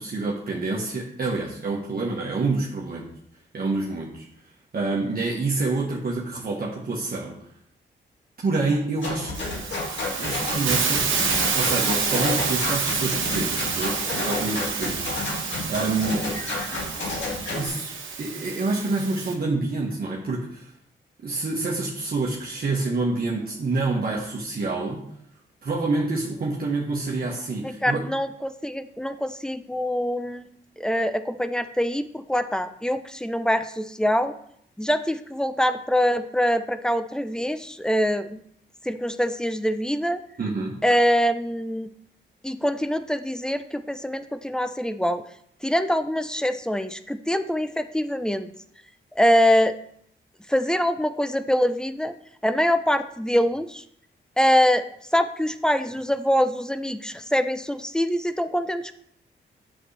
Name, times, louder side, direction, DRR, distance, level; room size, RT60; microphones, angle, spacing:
voice 1, 0.0-3.1 3.5-4.2 4.7-7.4 8.4-9.3 10.2-11.1 11.5-16.3 17.5-17.9 18.2-20.7 21.2-25.1 25.6-28.1 40.4-40.8, right 3 dB, 50° right, -4 dB, 1.3 m, -27 dB
sound 1, 9.0-17.7, left 2 dB, 65° left, 2.1 m, -31 dB
Hiss, 9.3-19.3, right 5 dB, 75° right, 1.3 m, -28 dB
voice 2, 27.8-30.5 30.8-34.3 34.8-38.4 38.8-40.2 40.8-41.9 42.4-45.2 45.6-48.5 49.2-49.7 50.5-52.1 52.4-53.8 54.4-54.8 55.1-58.9, equal, 5° left, 10 dB, 0.5 m, -24 dB
7.7 x 6.2 x 3.3 m, 0.69 s
cardioid pair, 65°, 20 cm